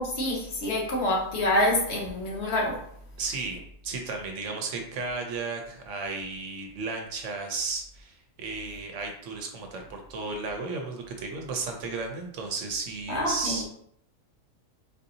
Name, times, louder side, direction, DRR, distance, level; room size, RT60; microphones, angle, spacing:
voice 1, 0.0-2.8 13.1-13.6, left 1 dB, 55° left, -2 dB, 1.1 m, -27 dB
voice 2, 3.2-13.6, right 4 dB, 70° right, 3 dB, 0.9 m, -34 dB
4.0 x 2.6 x 2.6 m, 0.68 s
omnidirectional pair, 1.4 m